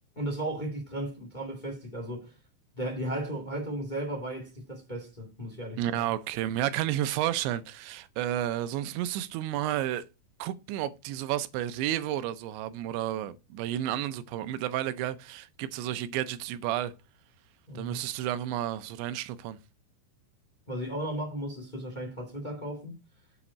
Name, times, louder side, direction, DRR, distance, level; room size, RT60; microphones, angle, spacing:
voice 1, 0.1-2.3 2.7-6.1 17.7-18.0 20.7-23.0, right 1 dB, 40° left, 0.6 m, -35 dB
voice 2, 5.8-10.0 10.4-16.9 17.8-19.6, right 12 dB, 80° right, 2.9 m, -31 dB
8.2 x 5.7 x 5.2 m
omnidirectional pair, 5.3 m